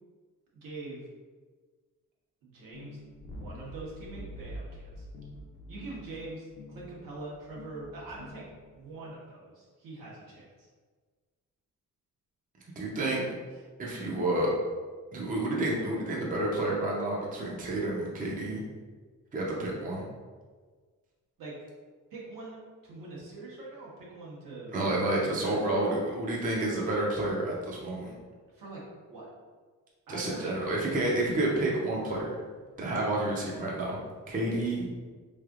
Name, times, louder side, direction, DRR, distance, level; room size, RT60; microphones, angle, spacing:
voice 1, 0.5-1.1 2.4-5.1 5.7-8.5 8.7-10.7 12.8-13.6 21.4-21.5 22.1-25.9 28.5-28.8 29.1-29.3 30.1-30.7, right 2 dB, 75° right, -5 dB, 1.2 m, -44 dB
sound 1, 2.7-8.9, equal, 35° left, 0.5 m, -46 dB
voice 2, 12.8-13.2 13.8-14.5 15.1-18.6 19.3-20.0 24.7-28.1 30.1-32.4 32.8-34.0 34.3-34.8, right 1 dB, 25° right, -3 dB, 0.5 m, -29 dB
3.7 x 3.3 x 2.4 m, 1.5 s
cardioid pair, 145°, 33 cm